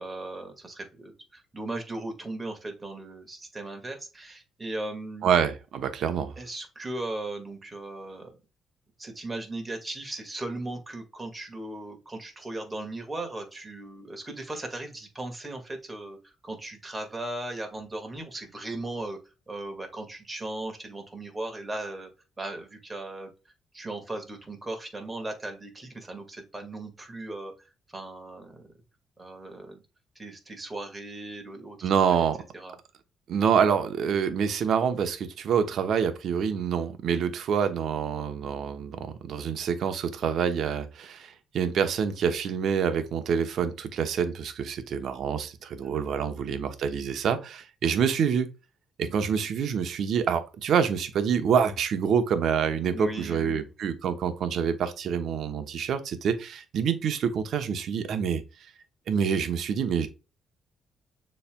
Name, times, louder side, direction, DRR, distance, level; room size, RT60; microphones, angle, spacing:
voice 1, 0.0-5.3 6.4-8.3 9.0-19.2 19.5-22.1 22.4-23.3 23.7-27.5 27.9-28.7 29.2-29.8 30.2-32.2 32.5-32.8 45.8-46.4 52.9-53.7, right 2 dB, 20° right, 4 dB, 1.8 m, -37 dB
voice 2, 5.2-6.4 31.8-32.4 33.3-48.5 49.0-58.4 59.1-60.1, right 7 dB, 70° right, 9 dB, 0.9 m, -26 dB
6.8 x 3.2 x 2.3 m, 0.30 s
cardioid pair, 90°, 0 cm